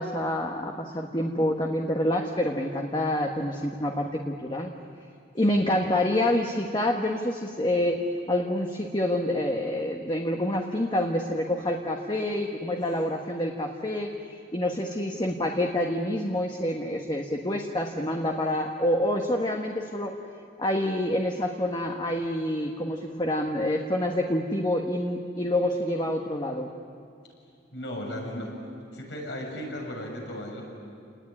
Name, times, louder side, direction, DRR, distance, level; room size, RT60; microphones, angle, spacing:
voice 1, 0.0-4.7 5.3-8.0 8.3-14.1 14.5-20.2 20.6-26.7, left 1 dB, 25° left, 2 dB, 1.4 m, -27 dB
voice 2, 27.7-28.6 28.9-30.6, left 1 dB, 75° left, 0 dB, 6.8 m, -36 dB
29.5 x 19.5 x 9.9 m, 2.4 s
head